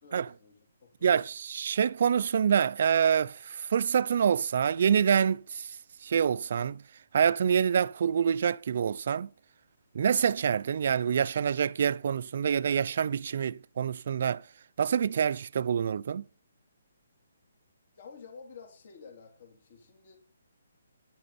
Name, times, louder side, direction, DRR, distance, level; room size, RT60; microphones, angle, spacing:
voice 1, 0.0-1.2 17.9-20.2, left 5 dB, 50° left, 3.4 m, -51 dB
voice 2, 1.0-5.8 6.0-6.8 7.1-9.3 9.9-14.4 14.8-16.2, right 7 dB, 55° right, 0.4 m, -26 dB
10.5 x 9.1 x 4.2 m
hypercardioid pair, 160°, 0 cm